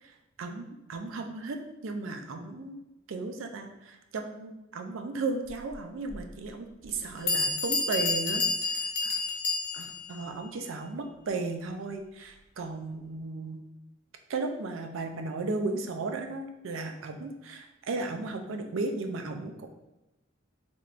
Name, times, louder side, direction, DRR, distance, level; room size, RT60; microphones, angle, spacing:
voice 1, 0.4-1.6 1.8-2.8 3.1-9.2 9.7-13.6 14.3-19.7, right 3 dB, 85° right, 5 dB, 0.4 m, -35 dB
Bell, 6.1-6.2 6.9-7.0 7.3-10.1, left 3 dB, 55° left, 0.7 m, -29 dB
3.5 x 3.1 x 2.4 m, 0.95 s
head